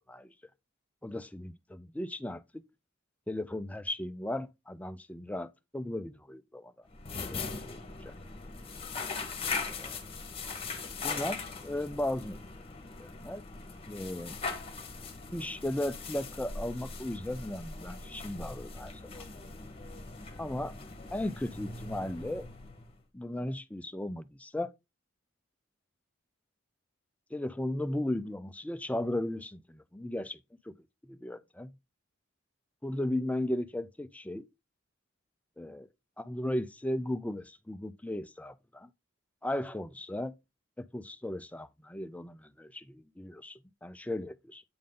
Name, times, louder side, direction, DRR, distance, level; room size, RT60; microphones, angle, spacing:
voice 1, 1.0-2.6 3.3-6.7 7.2-8.1 9.8-9.9 11.0-12.4 13.0-13.4 13.9-14.4 15.3-19.3 20.4-20.8 21.1-22.5 23.1-24.7 27.3-30.4 30.7-30.8 31.0-31.8 32.8-34.4 35.6-35.8 36.2-38.9 39.4-40.3 40.8-44.6, left 1 dB, 5° left, 0.4 m, -36 dB
sound 1, 6.9-23.0, left 4 dB, 30° left, 1.2 m, -40 dB
8.6 x 3.7 x 3.7 m
head